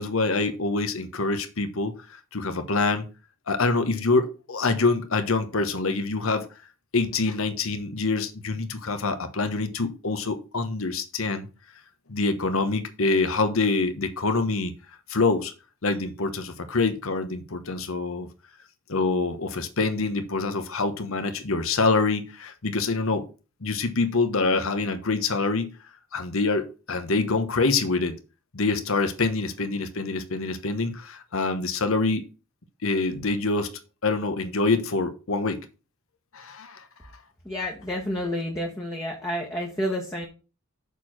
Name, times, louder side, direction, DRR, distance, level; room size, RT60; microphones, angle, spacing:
voice 1, 0.0-1.9 2.3-3.1 3.5-6.5 6.9-11.5 12.1-14.7 15.1-15.5 15.8-18.3 18.9-23.3 23.6-25.8 26.1-28.2 28.5-32.2 32.8-35.6 36.3-36.8, left 3 dB, 65° left, 1.0 m, -25 dB
voice 2, 37.5-40.3, equal, 15° left, 1.2 m, -30 dB
6.6 x 4.5 x 6.3 m
head